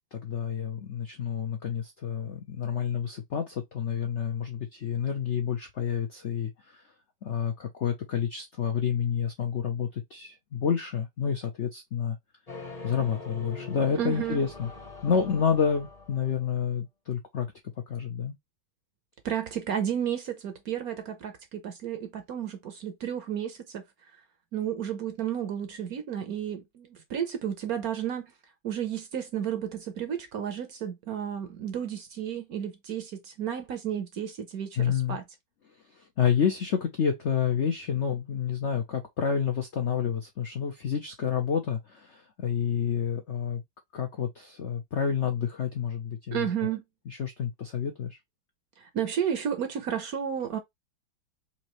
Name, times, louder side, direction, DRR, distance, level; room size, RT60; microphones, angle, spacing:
voice 1, 0.1-6.8 7.2-12.2 12.8-14.7 15.0-17.5 17.9-18.3 34.8-35.2 36.0-43.6 43.9-46.5 47.1-48.2, left 7 dB, 85° left, 0.6 m, -29 dB
sound 1, 12.5-16.6, left 3 dB, 30° left, 0.7 m, -43 dB
voice 2, 14.0-14.4 19.2-23.8 24.5-28.3 28.6-35.2 46.3-46.8 48.8-50.6, right 9 dB, 65° right, 1.0 m, -32 dB
4.3 x 2.7 x 3.0 m
omnidirectional pair, 2.1 m